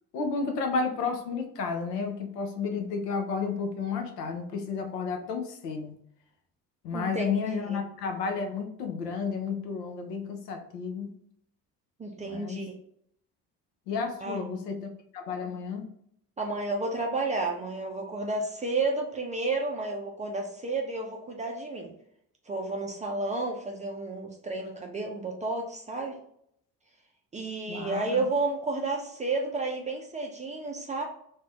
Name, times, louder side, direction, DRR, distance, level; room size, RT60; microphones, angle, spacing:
voice 1, 0.1-5.9 6.8-11.2 12.2-12.6 13.9-14.8 15.1-15.9 27.7-28.2, left 5 dB, 75° left, 4 dB, 0.6 m, -32 dB
voice 2, 6.9-7.8 12.0-12.7 14.2-14.6 16.4-21.9 22.5-26.2 27.3-31.0, right 3 dB, 15° right, 0 dB, 0.4 m, -31 dB
2.6 x 2.1 x 3.2 m, 0.69 s
figure-of-eight pair, 50°, 49 cm